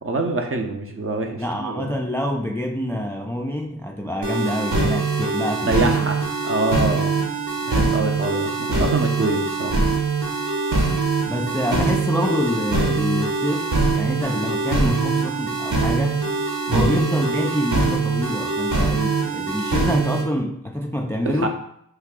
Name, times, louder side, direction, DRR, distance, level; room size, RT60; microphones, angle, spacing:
voice 1, 0.0-1.9 5.7-7.1 7.6-9.7 16.7-16.9 21.2-21.5, right 2 dB, 40° right, 3 dB, 0.6 m, -25 dB
voice 2, 1.4-6.1 11.3-16.2 16.7-21.5, left 1 dB, 10° left, 3 dB, 0.3 m, -26 dB
sound 1, 4.2-20.2, right 3 dB, 60° right, 1.1 m, -23 dB
3.3 x 2.3 x 3.6 m, 0.71 s
cardioid pair, 45°, 34 cm